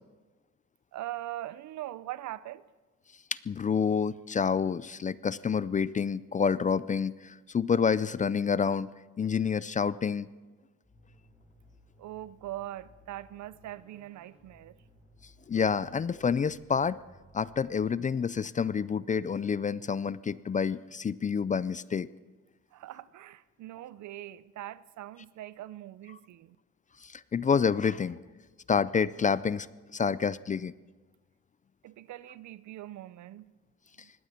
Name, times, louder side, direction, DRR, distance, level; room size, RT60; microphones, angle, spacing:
voice 1, 0.9-2.6 12.0-14.8 22.7-26.6 31.8-33.5 34.0-34.1, right 14 dB, 70° right, 0.6 m, -42 dB
voice 2, 3.3-8.9 9.2-10.3 15.5-17.0 17.3-22.1 27.0-28.2 28.7-29.7 29.9-30.7, left 6 dB, 25° left, 0.4 m, -28 dB
sound 1, 10.8-17.9, right 1 dB, 5° right, 6.6 m, -59 dB
19.5 x 15.5 x 4.4 m
cardioid pair, 90°, 30 cm